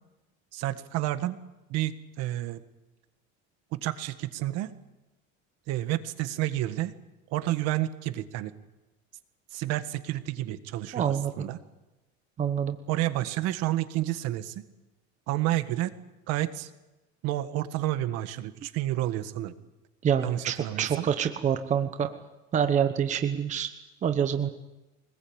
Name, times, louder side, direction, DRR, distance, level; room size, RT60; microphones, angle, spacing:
voice 1, 0.5-1.4 1.7-2.6 3.7-4.7 5.7-6.9 7.3-8.5 9.5-11.6 12.9-14.6 15.3-15.9 16.3-16.7 17.2-19.5 20.2-21.1, right 15 dB, 55° right, 11 dB, 1.6 m, -30 dB
voice 2, 10.9-11.3 12.4-12.8 20.0-22.1 22.5-23.7 24.0-24.5, right 8 dB, 25° right, 8 dB, 1.1 m, -26 dB
23.5 x 20.5 x 8.9 m, 1.0 s
cardioid pair, 165°, 31 cm